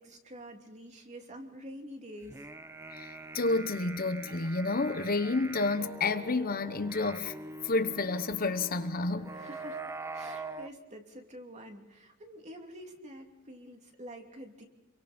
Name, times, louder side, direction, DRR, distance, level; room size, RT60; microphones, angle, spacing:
voice 1, 0.0-2.5 9.3-9.8 10.1-14.6, equal, 35° right, 3.0 m, -47 dB
sound 1, 2.2-10.7, right 3 dB, 15° right, 0.9 m, -44 dB
voice 2, 2.9-7.3 7.6-9.3, left 3 dB, 45° left, 1.0 m, -30 dB
28.0 x 23.5 x 4.4 m
head